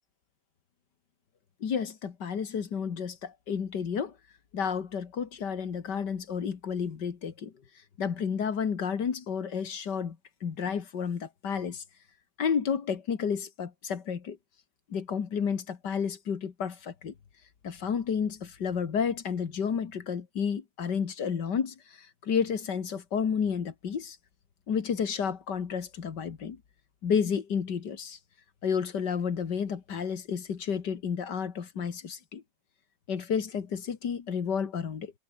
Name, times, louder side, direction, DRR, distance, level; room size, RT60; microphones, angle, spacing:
voice 1, 1.6-4.1 4.5-7.5 8.0-11.8 12.4-14.4 14.9-17.1 17.6-24.2 24.7-26.6 27.0-28.2 28.6-32.4 33.1-35.1, left 7 dB, 60° left, 2.3 m, -31 dB
omnidirectional pair, 2.2 m